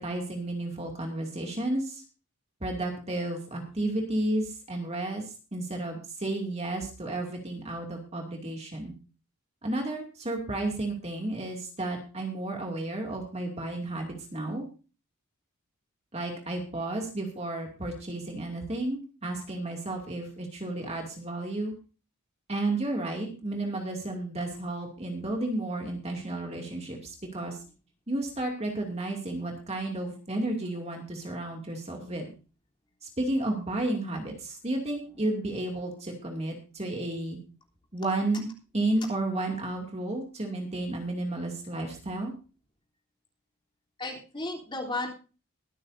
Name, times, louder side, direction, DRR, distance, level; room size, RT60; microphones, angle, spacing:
voice 1, 0.0-2.0 2.6-5.2 5.5-8.9 9.6-14.6 16.1-21.7 22.5-27.6 28.1-32.3 33.2-37.4 37.9-38.5 38.7-42.3, right 2 dB, 30° right, 1 dB, 2.5 m, -32 dB
voice 2, 34.9-35.3 38.0-38.4 44.0-45.1, left 2 dB, 20° left, -1 dB, 3.5 m, -36 dB
22.5 x 9.5 x 2.7 m, 0.35 s
head